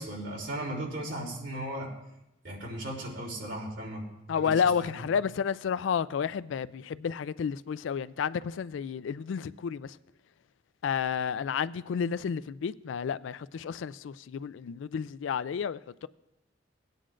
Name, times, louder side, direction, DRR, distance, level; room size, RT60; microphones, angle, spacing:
voice 1, 0.0-1.9 2.4-4.5 4.8-5.0, right 1 dB, 70° right, 3.2 m, -37 dB
voice 2, 4.3-10.0 10.8-16.1, left 7 dB, 75° left, 0.3 m, -31 dB
18.5 x 9.3 x 2.5 m
head